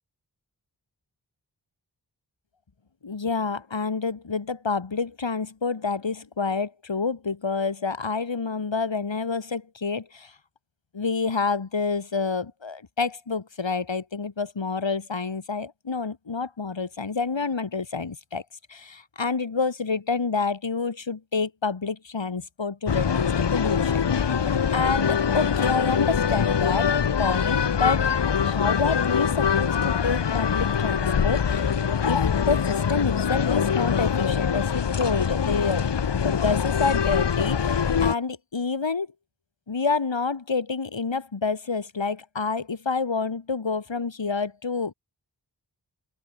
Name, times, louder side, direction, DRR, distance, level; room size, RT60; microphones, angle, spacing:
voice 1, 3.0-10.3 10.9-18.4 18.7-24.3 24.7-26.9 27.2-28.0 28.4-31.7 32.0-35.9 36.2-39.1 39.7-44.9, left 4 dB, 90° left, 5.8 m, -28 dB
sound 1, 22.9-38.1, left 7 dB, 70° left, 1.0 m, -23 dB
open air
wide cardioid pair, 50°, 43 cm